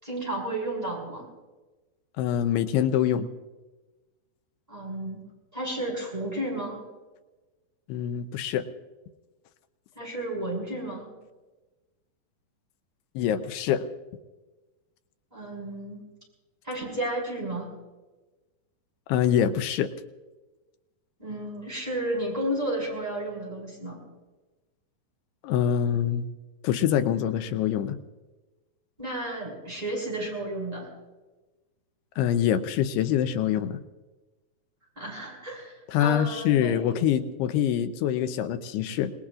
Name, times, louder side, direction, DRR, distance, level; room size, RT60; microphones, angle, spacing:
voice 1, 0.0-1.3 4.7-5.2 5.5-6.8 9.9-11.1 15.3-16.0 16.6-17.7 21.2-24.0 29.0-30.9 34.9-36.8, right 1 dB, 10° right, -3 dB, 5.0 m, -32 dB
voice 2, 2.2-3.3 7.9-8.7 13.2-13.9 19.1-19.9 25.4-26.3 26.6-28.0 32.2-33.8 35.9-39.1, left 10 dB, 85° left, 9 dB, 2.8 m, -25 dB
27.5 x 19.5 x 2.5 m, 1.2 s
omnidirectional pair, 4.7 m